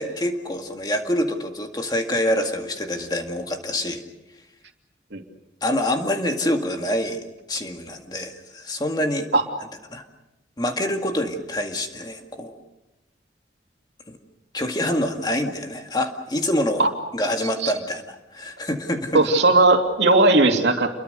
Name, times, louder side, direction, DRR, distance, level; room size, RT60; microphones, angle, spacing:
voice 1, 0.0-4.0 5.6-9.3 9.9-10.0 10.6-12.6 14.1-14.2 14.5-16.8 17.1-19.3, left 1 dB, 20° left, 4 dB, 2.0 m, -26 dB
voice 2, 19.1-20.9, right 2 dB, 75° right, 4 dB, 2.7 m, -17 dB
29.0 x 23.0 x 6.7 m, 0.99 s
head